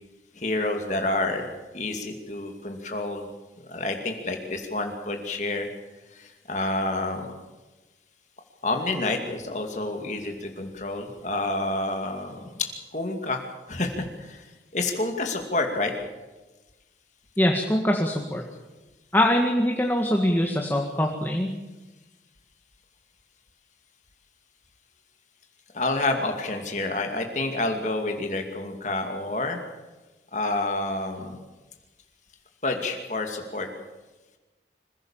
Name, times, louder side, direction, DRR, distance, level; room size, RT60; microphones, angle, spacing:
voice 1, 0.4-1.5 1.7-3.3 3.7-5.7 6.2-7.2 8.6-13.4 13.7-14.4 14.7-15.9 25.7-29.6 30.3-31.4 32.6-33.7, left 2 dB, 40° left, 4 dB, 2.4 m, -28 dB
voice 2, 17.4-18.4 19.1-21.5, left 1 dB, 10° left, 1 dB, 1.8 m, -23 dB
26.0 x 16.5 x 7.3 m, 1.2 s
head